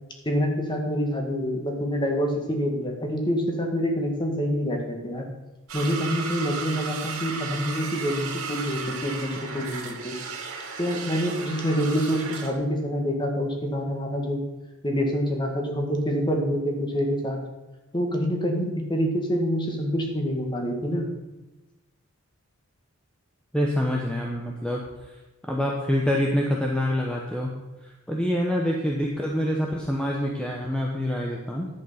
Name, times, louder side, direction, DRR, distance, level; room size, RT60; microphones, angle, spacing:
voice 1, 0.3-5.3 5.7-10.2 10.8-14.4 14.8-17.4 17.9-21.1, equal, 20° left, 2 dB, 1.9 m, -26 dB
sound 1, 5.7-12.5, right 5 dB, 80° right, 2.9 m, -35 dB
voice 2, 23.5-24.8 25.5-27.5 28.1-31.7, equal, 5° left, -1 dB, 1.0 m, -26 dB
10.5 x 8.4 x 5.7 m, 1.1 s
head